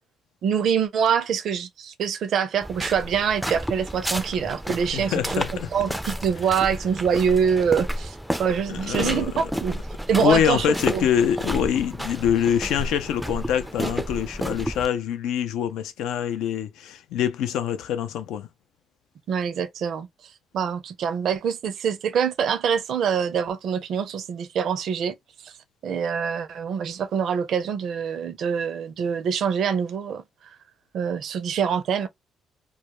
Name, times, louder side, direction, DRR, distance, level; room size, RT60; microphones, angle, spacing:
voice 1, 0.4-9.8 10.1-10.7 10.9-11.1 19.3-25.2 25.4-25.5 25.8-30.5 30.9-32.1, right 7 dB, 70° right, 0.5 m, -25 dB
sound 1, 2.6-14.9, equal, ahead, 0.4 m, -31 dB
voice 2, 4.9-5.7 8.7-9.3 10.2-18.5, left 9 dB, 85° left, 0.4 m, -25 dB
2.3 x 2.1 x 2.9 m
cardioid pair, 85°, 0 cm